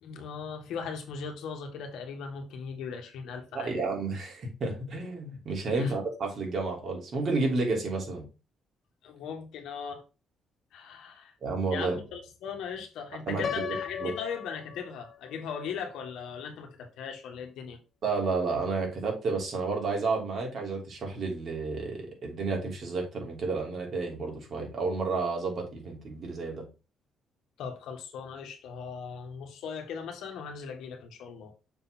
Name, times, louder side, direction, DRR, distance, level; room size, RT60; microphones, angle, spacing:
voice 1, 0.0-3.8 5.7-6.0 9.0-10.0 10.7-11.3 11.7-17.8 27.6-31.5, left 6 dB, 85° left, 1.8 m, -39 dB
voice 2, 3.5-8.2 11.4-12.0 13.3-13.6 14.0-14.1 18.0-26.6, right 3 dB, 55° right, 3.0 m, -31 dB
Piano, 13.4-15.4, left 9 dB, 55° left, 0.5 m, -37 dB
6.9 x 4.0 x 4.3 m
cardioid pair, 90°, 0 cm